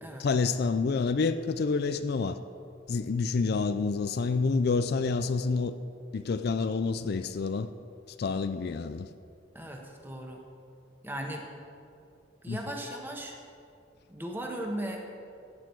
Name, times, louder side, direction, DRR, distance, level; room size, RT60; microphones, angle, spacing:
voice 1, 0.2-2.4 2.9-5.7 6.1-7.7 8.2-9.1 12.5-12.6, left 4 dB, 55° left, 11 dB, 0.4 m, -28 dB
voice 2, 9.5-10.4 11.0-11.4 12.4-13.3 14.1-15.0, right 1 dB, 10° right, 1 dB, 1.3 m, -37 dB
15.0 x 8.6 x 4.6 m, 2.4 s
head